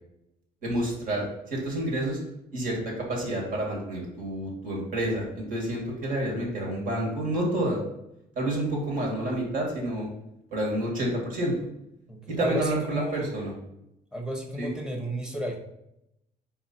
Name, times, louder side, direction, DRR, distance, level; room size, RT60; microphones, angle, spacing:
voice 1, 0.6-2.2 2.5-7.8 8.3-10.1 10.5-11.6 12.3-13.5 14.6-14.7, right 1 dB, 60° right, -1 dB, 2.3 m, -29 dB
voice 2, 12.1-13.3 14.1-15.6, equal, 5° right, 2 dB, 1.1 m, -33 dB
4.9 x 4.8 x 4.4 m, 0.83 s
cardioid pair, 145°, 16 cm